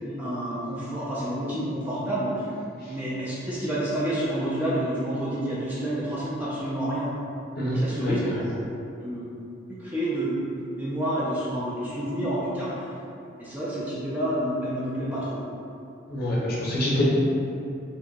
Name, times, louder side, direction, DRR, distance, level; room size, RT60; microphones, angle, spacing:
voice 1, 0.0-2.5 2.9-7.1 7.6-8.5 9.0-9.3 9.8-12.9 13.4-15.4, right 1 dB, 10° right, -9 dB, 0.5 m, -29 dB
voice 2, 7.6-8.4 16.1-17.1, equal, 50° left, -6 dB, 0.7 m, -26 dB
3.7 x 2.9 x 2.7 m, 2.7 s
head